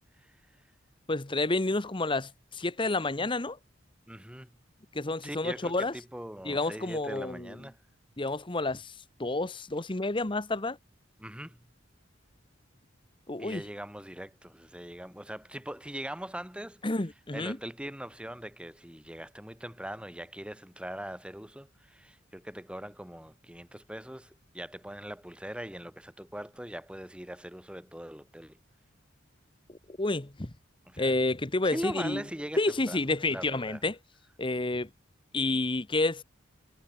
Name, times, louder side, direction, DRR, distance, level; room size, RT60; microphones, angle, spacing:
voice 1, 1.1-3.6 4.9-5.9 6.4-7.6 8.2-8.9 9.2-10.8 13.3-13.6 16.8-17.6 29.7-30.5 31.0-32.2 32.6-34.0 34.4-34.9 35.3-36.2, left 2 dB, 25° left, 1.1 m, -30 dB
voice 2, 4.1-4.5 5.2-7.8 11.2-11.7 13.4-16.8 17.3-28.6 30.9-31.1 31.6-32.6 32.9-33.0 33.3-33.8, right 1 dB, 5° right, 2.7 m, -41 dB
head